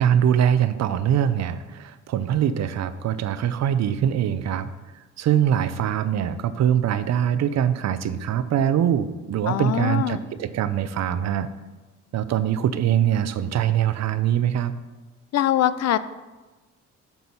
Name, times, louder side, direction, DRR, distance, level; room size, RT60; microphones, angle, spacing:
voice 1, 0.0-4.7 5.2-11.5 12.1-14.7, right 9 dB, 60° right, 13 dB, 0.6 m, -23 dB
voice 2, 9.5-10.2 15.3-16.0, left 12 dB, 60° left, 15 dB, 0.5 m, -22 dB
6.9 x 6.1 x 5.5 m, 1.2 s
cardioid pair, 90°, 30 cm